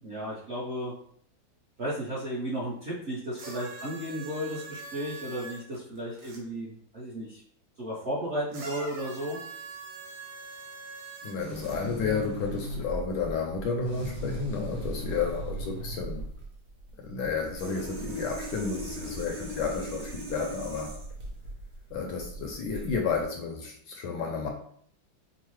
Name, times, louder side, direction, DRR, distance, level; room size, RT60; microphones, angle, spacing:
voice 1, 0.0-0.9 1.8-7.4 7.8-9.4, equal, 55° right, -7 dB, 0.7 m, -34 dB
sound 1, 3.3-6.4 8.5-11.8 12.7-12.8, right 4 dB, 90° right, 1.7 m, -43 dB
voice 2, 11.2-16.2 17.0-20.9 21.9-24.5, left 5 dB, 75° left, 2 dB, 1.1 m, -31 dB
sound 2, 11.4-23.2, right 1 dB, 75° right, 1.7 m, -38 dB
5.3 x 2.0 x 3.1 m, 0.62 s
omnidirectional pair, 2.2 m